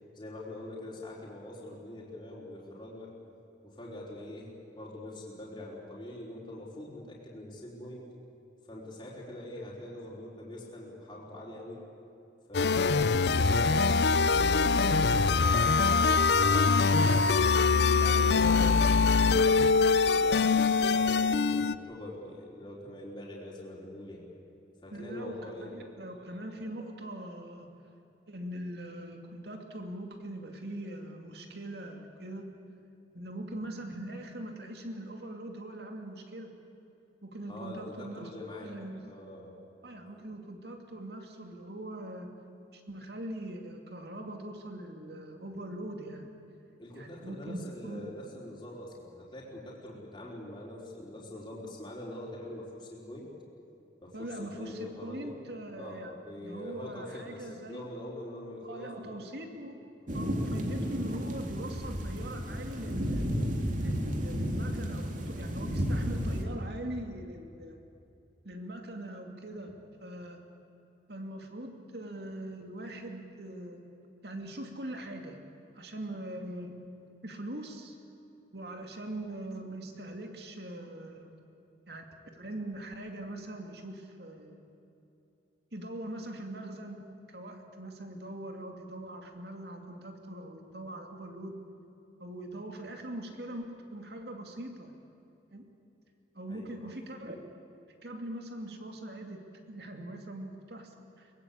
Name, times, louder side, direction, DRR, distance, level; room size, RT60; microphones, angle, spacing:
voice 1, 0.1-3.1 3.6-8.1 8.6-11.9 12.5-16.2 16.5-19.7 20.1-24.3 24.8-25.9 37.5-38.7 39.0-39.5 46.8-53.3 54.0-55.3 55.8-59.3 60.0-60.2 96.5-96.9, left 1 dB, 25° left, -5 dB, 4.3 m, -44 dB
sound 1, 12.5-21.8, left 4 dB, 65° left, 0.6 m, -23 dB
voice 2, 24.9-27.7 28.3-32.5 33.1-36.5 37.2-39.1 39.8-42.3 42.7-46.3 47.0-48.1 54.1-56.2 56.4-57.9 58.6-59.8 60.1-63.2 63.8-67.8 68.4-70.4 71.1-73.9 74.2-75.4 75.7-76.9 77.2-78.0 78.5-81.3 81.9-82.1 82.3-84.7 85.7-91.6 92.2-94.9 95.5-95.7 96.3-97.4 98.0-99.4 99.7-101.3, right 1 dB, 60° right, 4 dB, 2.6 m, -42 dB
sound 2, 60.1-66.4, equal, 45° right, 2.5 m, -32 dB
23.0 x 20.5 x 8.6 m, 2.8 s
head